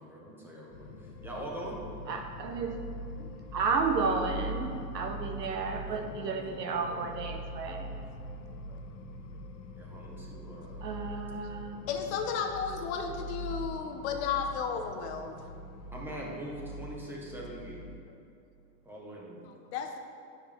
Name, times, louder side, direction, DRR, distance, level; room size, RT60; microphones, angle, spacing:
voice 1, 0.0-1.8 5.8-7.1 9.8-10.9 15.9-17.8 18.8-19.4, right 1 dB, 5° right, -3 dB, 1.2 m, -43 dB
sound 1, 0.7-18.0, equal, 90° left, 1.0 m, -42 dB
voice 2, 2.1-3.0 3.5-8.0 10.8-11.8, right 4 dB, 85° right, 4 dB, 1.3 m, -32 dB
voice 3, 11.9-15.3 19.4-20.0, left 6 dB, 45° left, 4 dB, 0.9 m, -34 dB
9.8 x 7.2 x 3.7 m, 2.5 s
hypercardioid pair, 140°, 48 cm